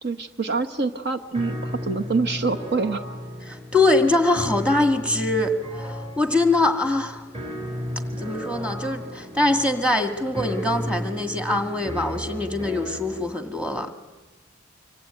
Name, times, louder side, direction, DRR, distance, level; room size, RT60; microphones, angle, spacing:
voice 1, 0.0-3.0, right 4 dB, 60° right, 7 dB, 1.2 m, -26 dB
sound 1, 1.3-13.3, equal, 30° right, 6.2 m, -34 dB
voice 2, 3.5-7.2 8.2-13.9, left 2 dB, 5° right, 6 dB, 1.9 m, -23 dB
25.5 x 24.0 x 9.1 m, 1.1 s
head